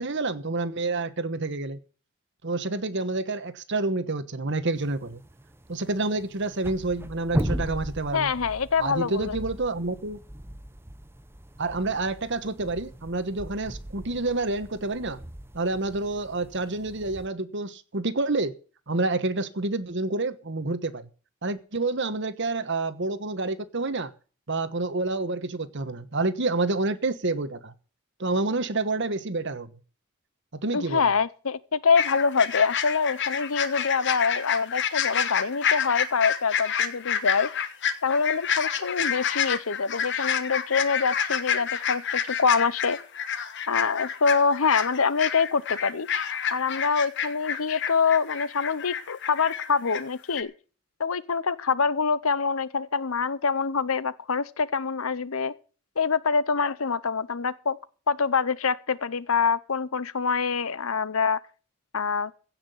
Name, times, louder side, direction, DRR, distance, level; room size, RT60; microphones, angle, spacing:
voice 1, 0.0-1.8 2.4-5.2 5.7-8.3 8.8-10.2 11.6-15.2 15.5-18.5 18.9-21.1 21.4-24.1 24.5-27.7 28.2-29.7 30.5-31.1, right 3 dB, 55° right, 1.2 m, -28 dB
sound 1, 4.8-17.3, equal, 10° right, 0.8 m, -38 dB
voice 2, 8.1-9.4 30.7-37.5 38.0-43.0 43.7-50.5 51.0-55.5 56.0-57.8 58.1-61.4 61.9-62.3, left 5 dB, 75° left, 0.9 m, -25 dB
sound 2, 32.0-50.0 50.3-50.4, left 8 dB, 55° left, 1.3 m, -29 dB
16.0 x 6.0 x 8.2 m
head